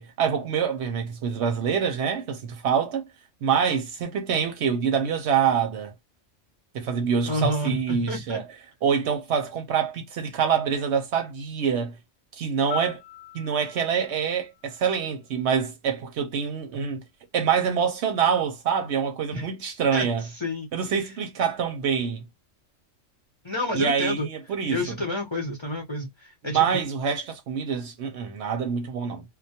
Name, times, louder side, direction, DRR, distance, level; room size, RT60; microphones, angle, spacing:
voice 1, 0.0-3.1 3.4-5.9 6.7-8.4 8.8-12.0 12.4-13.0 13.3-17.0 17.3-20.3 20.7-22.2 23.7-24.8 26.4-29.2, right 7 dB, 65° right, 0.8 m, -25 dB
voice 2, 7.2-8.4 19.3-19.5 19.9-20.1 20.4-20.7 23.4-24.3 24.7-26.7, left 1 dB, 30° left, 0.6 m, -29 dB
Piano, 12.7-15.6 23.8-24.0, left 13 dB, 70° left, 0.9 m, -42 dB
2.2 x 2.2 x 2.7 m
omnidirectional pair, 1.3 m